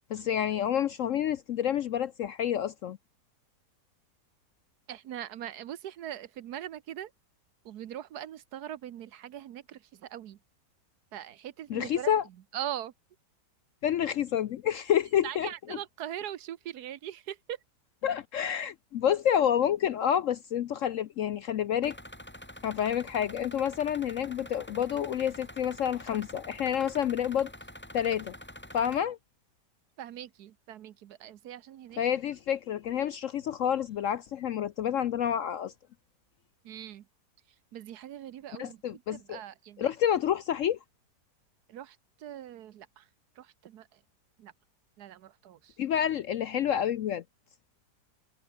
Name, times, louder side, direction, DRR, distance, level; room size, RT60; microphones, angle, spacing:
voice 1, 0.1-3.0 11.7-12.2 13.8-15.5 18.0-22.0 22.6-27.5 27.9-28.3 28.7-29.2 32.0-35.7 38.6-39.4 39.8-40.8 45.8-47.2, left 9 dB, 65° left, 0.8 m, -28 dB
voice 2, 4.9-7.1 7.6-10.4 11.1-12.1 12.5-12.9 15.2-17.6 30.0-32.0 36.6-37.1 37.7-39.9 41.7-43.1 43.4-44.0 44.4-44.5 45.0-45.8, right 11 dB, 70° right, 1.3 m, -41 dB
sound 1, 21.8-29.0, left 1 dB, 5° left, 2.8 m, -46 dB
omnidirectional pair, 1.8 m